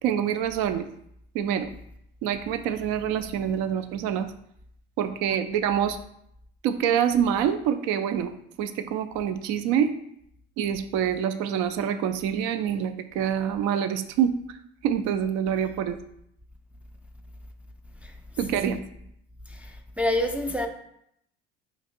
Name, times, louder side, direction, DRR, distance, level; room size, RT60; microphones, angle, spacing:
voice 1, 0.0-0.9 1.3-1.7 2.2-4.3 5.0-6.0 6.6-8.3 8.6-9.9 10.6-14.3 14.8-16.0 18.4-18.8, right 9 dB, 70° right, 0.5 m, -26 dB
voice 2, 19.5-20.7, left 1 dB, 5° right, 0.3 m, -28 dB
2.9 x 2.5 x 4.3 m
hypercardioid pair, 70°, 30 cm